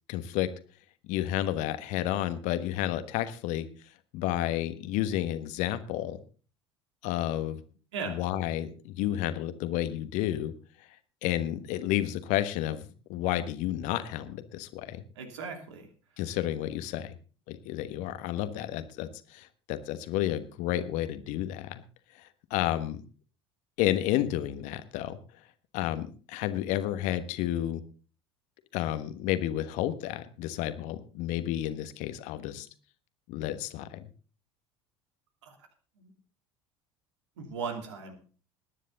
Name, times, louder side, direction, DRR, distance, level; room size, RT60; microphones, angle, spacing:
voice 1, 0.1-0.5 1.1-3.7 4.1-6.2 7.0-7.6 8.0-10.5 11.2-12.8 13.1-15.0 16.2-17.1 17.5-21.8 22.5-23.0 23.8-25.2 25.7-27.8 28.7-32.7 33.3-34.0, left 13 dB, 55° left, 12 dB, 1.3 m, -31 dB
voice 2, 15.2-15.9 35.5-35.6 36.0-36.1 37.4-38.1, right 5 dB, 70° right, 5 dB, 2.8 m, -37 dB
19.5 x 10.0 x 4.0 m, 0.38 s
figure-of-eight pair, 65°, 16 cm